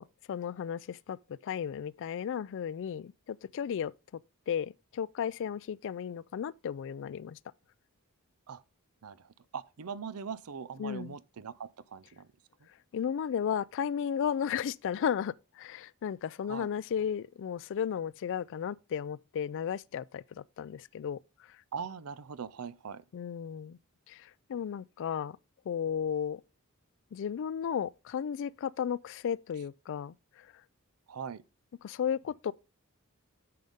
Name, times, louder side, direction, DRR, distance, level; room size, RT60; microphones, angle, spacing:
voice 1, 0.0-4.2 4.5-7.4 10.8-11.2 12.9-21.2 23.1-23.8 24.1-25.4 25.7-26.4 27.1-30.5 31.8-32.5, left 8 dB, 60° left, 0.3 m, -34 dB
voice 2, 9.5-12.3 16.5-16.7 21.7-23.0 31.1-31.4, right 6 dB, 85° right, 0.5 m, -41 dB
9.2 x 6.7 x 3.5 m
head